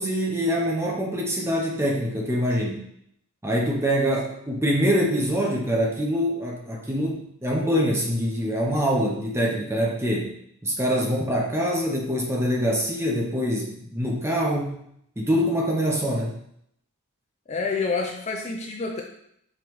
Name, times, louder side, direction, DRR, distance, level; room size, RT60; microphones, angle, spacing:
voice 1, 0.0-2.8 3.4-10.3 10.6-14.8 15.2-16.3, equal, 10° right, -1 dB, 0.6 m, -24 dB
voice 2, 17.5-19.0, left 4 dB, 30° left, 1 dB, 0.3 m, -28 dB
5.2 x 3.0 x 3.0 m, 0.72 s
head